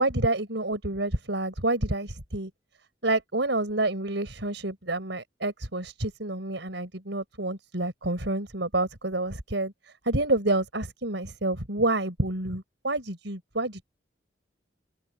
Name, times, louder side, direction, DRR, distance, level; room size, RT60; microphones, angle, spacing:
voice 1, 0.0-2.5 3.0-13.8, right 2 dB, 90° right, 5.0 m, -28 dB
head